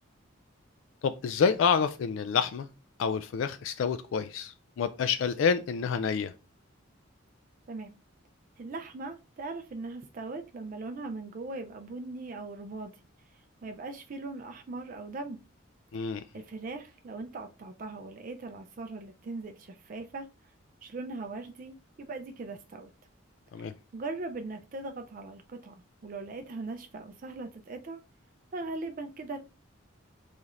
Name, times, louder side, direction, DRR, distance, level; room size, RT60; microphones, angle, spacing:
voice 1, 1.0-2.7 3.0-6.3 15.9-16.2 23.5-23.7, left 6 dB, 70° left, 0.3 m, -28 dB
voice 2, 8.6-12.9 13.3-15.4 16.0-20.3 20.8-22.9 23.9-28.0 28.5-29.4, right 3 dB, 40° right, 0.4 m, -40 dB
4.8 x 4.1 x 2.4 m
head